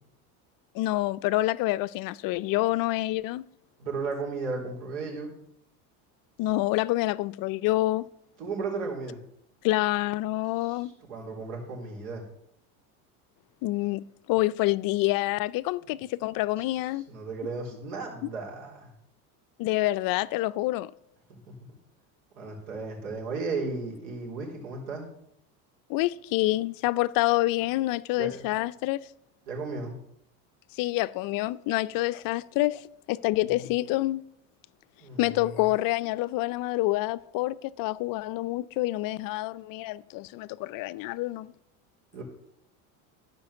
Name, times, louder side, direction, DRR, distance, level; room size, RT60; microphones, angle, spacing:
voice 1, 0.7-3.4 6.4-8.1 9.6-10.9 13.6-17.0 19.6-20.9 25.9-29.0 30.8-34.2 35.2-41.5, left 18 dB, 55° left, 0.5 m, -27 dB
voice 2, 3.8-5.3 8.4-9.2 10.6-12.3 15.8-15.9 16.2-16.3 16.6-16.8 17.1-18.9 21.3-21.5 22.4-25.1 28.2-28.5 29.5-30.0 33.4-33.6 35.0-35.7 42.1-42.2, right 4 dB, 85° right, 3.7 m, -35 dB
13.0 x 5.2 x 7.0 m
supercardioid pair, 110°, 41 cm